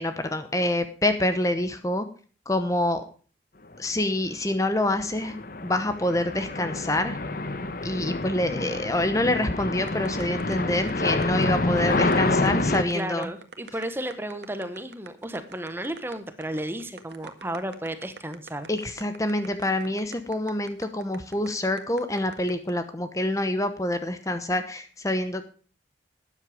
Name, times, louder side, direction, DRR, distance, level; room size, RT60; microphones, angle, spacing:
voice 1, 0.0-2.1 2.5-3.0 3.8-7.2 7.8-13.3 18.7-25.4, left 1 dB, 15° left, 9 dB, 0.9 m, -26 dB
sound 1, 5.0-12.8, left 2 dB, 50° left, 1.1 m, -27 dB
sound 2, 9.9-22.7, right 4 dB, 65° right, 1.7 m, -45 dB
voice 2, 12.9-18.7, right 1 dB, 10° right, 10 dB, 1.2 m, -33 dB
13.0 x 9.9 x 5.0 m, 0.40 s
head